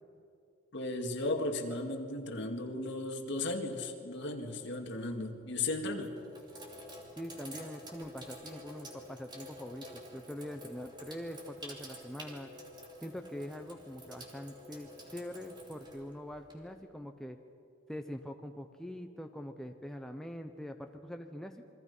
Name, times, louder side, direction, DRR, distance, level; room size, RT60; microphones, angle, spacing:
voice 1, 0.7-6.2, left 2 dB, 60° left, 4 dB, 2.1 m, -35 dB
Sink (filling or washing), 4.8-5.3 5.9-16.8, equal, 20° right, 2.8 m, -49 dB
voice 2, 7.2-12.5 13.0-17.4 17.9-21.6, equal, ahead, 4 dB, 0.8 m, -43 dB
28.5 x 23.5 x 5.5 m, 2.5 s
head